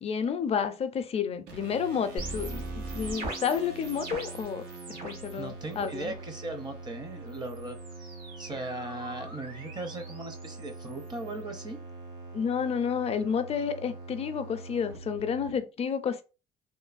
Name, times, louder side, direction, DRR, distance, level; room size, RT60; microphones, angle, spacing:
voice 1, 0.0-2.6 2.9-6.1 12.3-16.2, left 7 dB, 40° left, 0.4 m, -30 dB
sound 1, 1.5-15.6, right 3 dB, 85° right, 0.7 m, -44 dB
sound 2, 2.2-5.4 5.7-6.3 7.3-11.4, right 2 dB, 60° right, 1.4 m, -41 dB
voice 2, 5.4-11.8, right 2 dB, 25° right, 0.6 m, -38 dB
3.1 x 2.0 x 2.4 m
cardioid pair, 110°, 17 cm